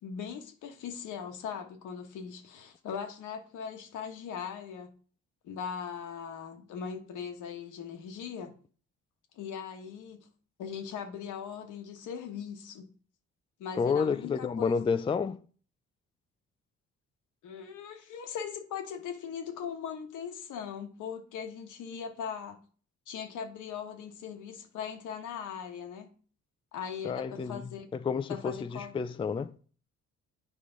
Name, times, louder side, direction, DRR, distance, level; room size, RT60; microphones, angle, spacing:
voice 1, 0.0-4.9 5.4-8.5 9.3-10.3 10.6-12.9 13.6-14.8 17.4-22.6 23.1-26.1 26.7-27.9 28.3-28.9, left 7 dB, 80° left, 1.2 m, -39 dB
voice 2, 13.8-15.4 27.0-29.5, left 5 dB, 20° left, 0.4 m, -30 dB
8.5 x 4.8 x 3.9 m
cardioid pair, 90°, 30 cm